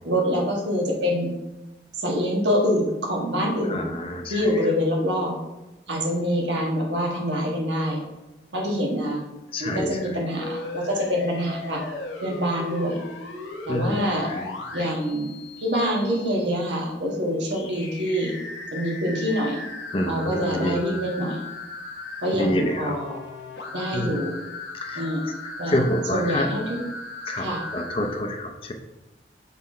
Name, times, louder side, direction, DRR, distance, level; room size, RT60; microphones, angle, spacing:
voice 1, 0.0-1.3 2.0-3.8 4.3-5.4 5.9-8.0 8.5-9.2 9.6-11.8 12.2-13.0 13.6-14.3 14.7-15.3 15.6-18.3 18.7-19.6 20.1-21.4 22.2-23.2 23.7-24.3 24.9-25.2 25.6-25.8 26.1-26.8 27.4-27.6, equal, 80° right, -1 dB, 1.6 m, -25 dB
voice 2, 3.7-4.5 9.5-10.0 13.7-14.5 19.9-20.8 22.3-23.0 23.9-24.2 24.8-25.1 25.4-26.5 27.3-28.7, left 1 dB, 30° left, 3 dB, 0.6 m, -27 dB
sound 1, 10.4-16.4 17.5-28.2, left 3 dB, 80° left, 1.0 m, -37 dB
5.7 x 4.1 x 4.3 m, 0.99 s
head